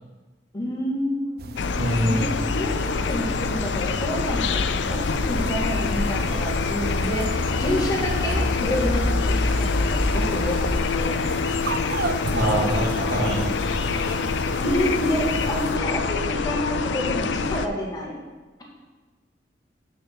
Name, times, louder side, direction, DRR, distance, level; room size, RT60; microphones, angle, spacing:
voice 1, 0.5-1.6 2.1-10.6 10.8-11.2 14.6-18.1, equal, 25° left, -3 dB, 1.9 m, -28 dB
sound 1, 1.4-15.8, right 4 dB, 60° right, 0.5 m, -35 dB
sound 2, 1.6-17.7, left 5 dB, 90° left, 0.5 m, -26 dB
voice 2, 1.7-2.3 12.3-14.1, right 1 dB, 80° right, -3 dB, 2.5 m, -25 dB
sound 3, 3.8-10.8, left 1 dB, 60° left, 1.2 m, -29 dB
7.5 x 6.6 x 6.0 m, 1.3 s
head